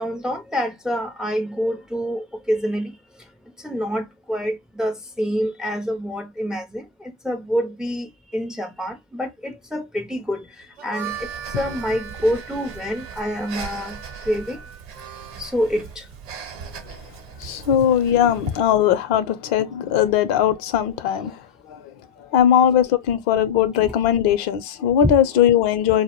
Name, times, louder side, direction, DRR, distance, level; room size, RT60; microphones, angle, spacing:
voice 1, 0.0-3.0 3.6-11.3 11.5-14.0 14.2-14.6 15.4-16.1 25.0-25.1, equal, ahead, 0.4 m, -26 dB
Harmonica, 10.6-15.6, right 8 dB, 80° right, 0.7 m, -38 dB
Breathing, 11.0-18.7, right 7 dB, 45° right, 0.9 m, -39 dB
voice 2, 16.6-17.0 17.4-26.0, left 9 dB, 55° left, 0.5 m, -20 dB
2.2 x 2.0 x 2.9 m
hypercardioid pair, 95°, 31 cm